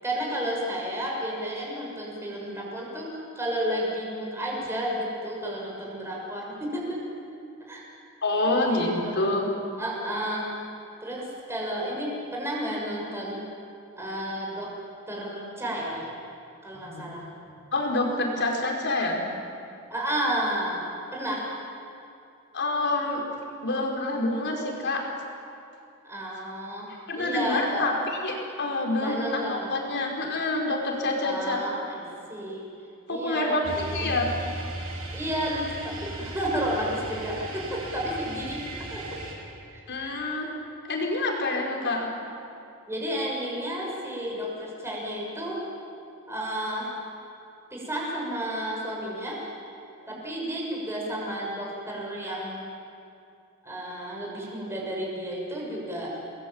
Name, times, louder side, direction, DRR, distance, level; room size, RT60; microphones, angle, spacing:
voice 1, 0.0-7.0 7.7-7.8 8.4-9.3 9.8-10.6 11.0-13.4 14.0-14.8 15.1-16.1 16.6-17.3 19.9-21.6 26.0-28.0 29.0-29.7 31.2-32.0 32.3-32.7 33.1-34.1 35.1-39.0 39.7-40.2 42.9-45.7 46.3-47.0 47.7-49.5 50.1-52.6 53.6-56.2, equal, 10° right, -3 dB, 6.6 m, -32 dB
voice 2, 8.2-9.5 16.8-17.0 17.5-19.3 22.5-23.2 23.6-25.0 27.1-27.9 28.2-31.6 33.1-33.6 33.9-34.3 39.9-40.5 40.9-42.1 50.1-50.2, left 2 dB, 55° left, 1 dB, 5.3 m, -27 dB
sound 1, 33.6-39.3, right 1 dB, 75° right, 7.3 m, -37 dB
28.5 x 21.0 x 9.0 m, 2.6 s
head